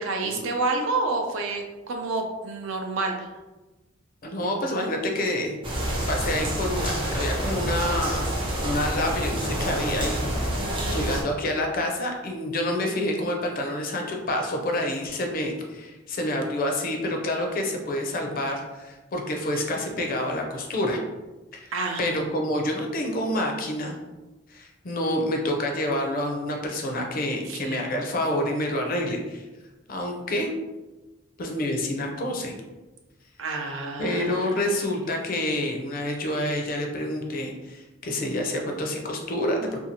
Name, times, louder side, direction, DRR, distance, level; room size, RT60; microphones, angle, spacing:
voice 1, 0.0-3.3 10.6-11.2 21.7-22.2 27.4-27.8 33.4-34.9, right 3 dB, 80° right, 3 dB, 0.5 m, -29 dB
voice 2, 4.2-5.6 6.1-10.3 10.9-21.0 21.5-21.7 22.0-24.0 24.5-29.4 29.9-30.5 31.4-32.5 34.0-39.8, left 1 dB, 45° left, 2 dB, 0.5 m, -28 dB
sound 1, 5.6-11.2, right 1 dB, 25° right, 0.5 m, -28 dB
2.6 x 2.3 x 2.8 m, 1.1 s
head